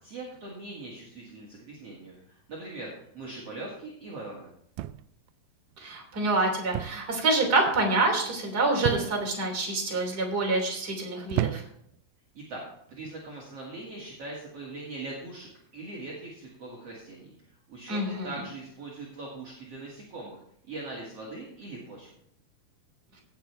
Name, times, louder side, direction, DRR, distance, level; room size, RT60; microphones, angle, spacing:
voice 1, 0.0-4.5 12.3-12.6 12.9-17.3 17.7-22.1, right 2 dB, 45° right, -4 dB, 3.0 m, -41 dB
sound 1, 4.8-5.3 6.7-7.1 7.4-7.8 8.8-9.4 10.1-10.5 11.3-12.0 12.9-13.2, right 14 dB, 85° right, 2.3 m, -32 dB
voice 2, 5.8-11.6 17.9-18.3, right 2 dB, 25° right, 0 dB, 3.4 m, -26 dB
17.0 x 8.4 x 3.4 m, 0.69 s
omnidirectional pair, 4.1 m